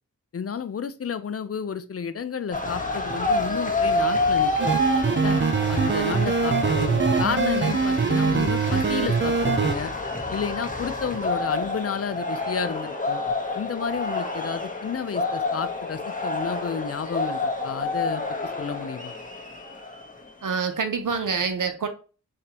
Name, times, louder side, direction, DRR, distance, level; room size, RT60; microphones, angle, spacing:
voice 1, 0.3-4.8 5.2-5.4 5.7-9.9 10.3-13.2 13.6-18.2 18.6-19.1, left 6 dB, 45° left, 0.5 m, -31 dB
sound 1, 2.5-20.3, left 2 dB, 25° left, 1.0 m, -28 dB
sound 2, 4.6-9.7, right 4 dB, 35° right, 0.4 m, -23 dB
voice 2, 20.4-21.9, right 5 dB, 75° right, 0.8 m, -26 dB
4.2 x 3.8 x 2.9 m
wide cardioid pair, 60°, 32 cm